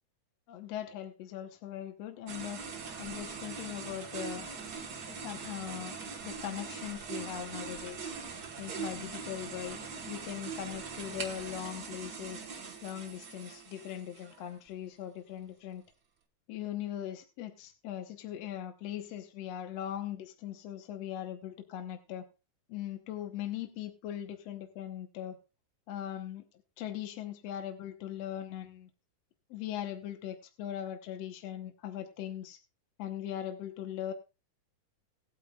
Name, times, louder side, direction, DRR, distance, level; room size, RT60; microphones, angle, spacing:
voice 1, 0.5-2.6 3.0-4.5 5.1-6.0 6.2-8.1 8.6-9.8 10.0-12.4 12.8-15.8 16.5-22.3 22.7-25.4 25.9-26.4 26.8-28.9 29.5-32.6 33.0-34.1, left 11 dB, 65° left, 6 dB, 1.8 m, -40 dB
sound 1, 2.3-14.6, right 5 dB, 60° right, 1.0 m, -42 dB
20.0 x 8.7 x 2.4 m, 0.29 s
omnidirectional pair, 4.0 m